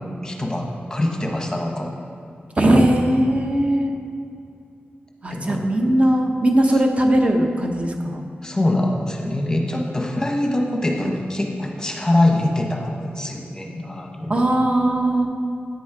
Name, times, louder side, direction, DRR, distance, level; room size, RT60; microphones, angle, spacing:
voice 1, 0.2-1.9 5.3-5.6 8.4-14.4, left 1 dB, 15° left, 2 dB, 0.9 m, -23 dB
voice 2, 2.6-4.0 5.2-8.3 14.3-15.3, right 1 dB, 30° right, 3 dB, 0.8 m, -19 dB
9.3 x 6.2 x 4.8 m, 2.4 s
wide cardioid pair, 140°, 4 cm